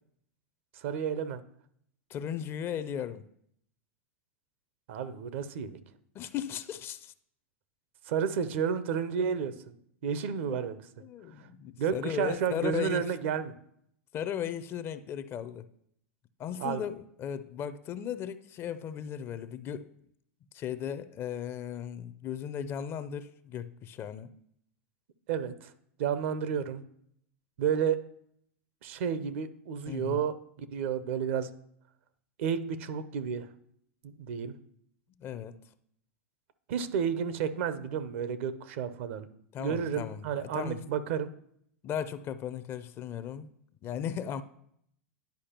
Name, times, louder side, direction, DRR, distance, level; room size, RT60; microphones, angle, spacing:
voice 1, 0.7-1.4 4.9-5.8 8.1-9.5 10.0-10.8 11.8-13.5 16.6-16.8 25.3-25.7 26.0-26.8 27.6-28.0 28.8-31.5 32.4-33.5 34.0-34.5 36.7-39.3 39.6-41.3, right 7 dB, 65° right, 0.6 m, -31 dB
voice 2, 2.1-3.2 6.1-7.1 10.5-10.6 11.0-13.1 14.1-15.7 16.4-19.9 20.5-24.3 29.9-30.2 35.2-35.5 39.5-40.8 41.8-43.5 43.8-44.4, left 9 dB, 35° left, 0.4 m, -36 dB
10.5 x 4.7 x 2.9 m
hypercardioid pair, 100°, 7 cm